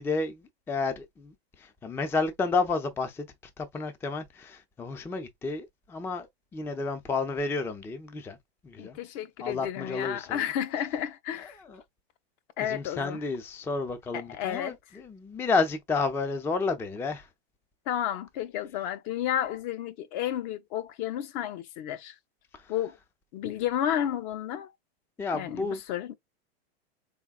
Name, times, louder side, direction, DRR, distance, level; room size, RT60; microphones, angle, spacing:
voice 1, 0.0-3.3 3.6-8.4 8.6-9.0 9.4-10.4 11.4-11.8 12.6-17.3 22.5-22.7 25.2-25.8, left 4 dB, 10° left, 0.4 m, -31 dB
voice 2, 8.8-11.6 12.6-13.2 14.3-14.8 17.9-22.1 22.7-23.0 23.3-24.7 25.3-26.1, left 10 dB, 50° left, 0.7 m, -32 dB
3.9 x 3.6 x 2.2 m
supercardioid pair, 130°, 31 cm